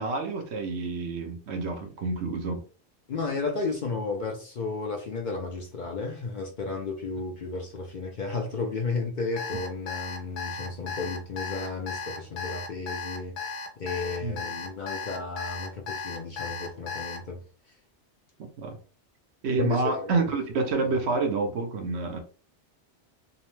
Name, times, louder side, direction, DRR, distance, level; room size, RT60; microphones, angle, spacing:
voice 1, 0.0-2.6 14.2-14.4 18.4-18.8 19.4-22.2, right 3 dB, 70° right, 0.9 m, -28 dB
voice 2, 3.1-17.4 19.6-20.2 20.7-20.8, left 4 dB, 55° left, 0.6 m, -33 dB
Alarm, 9.4-17.2, left 4 dB, 85° left, 1.0 m, -35 dB
2.7 x 2.1 x 3.0 m
omnidirectional pair, 1.2 m